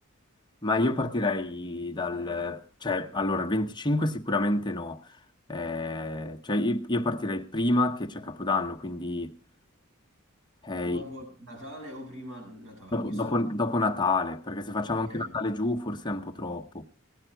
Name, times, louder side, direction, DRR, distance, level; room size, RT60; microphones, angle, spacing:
voice 1, 0.6-5.0 5.5-9.4 10.6-11.0 12.9-16.8, left 2 dB, 20° left, 0.9 m, -28 dB
voice 2, 10.8-13.4 14.9-15.3, equal, 65° right, 7.2 m, -43 dB
17.5 x 11.0 x 4.5 m
head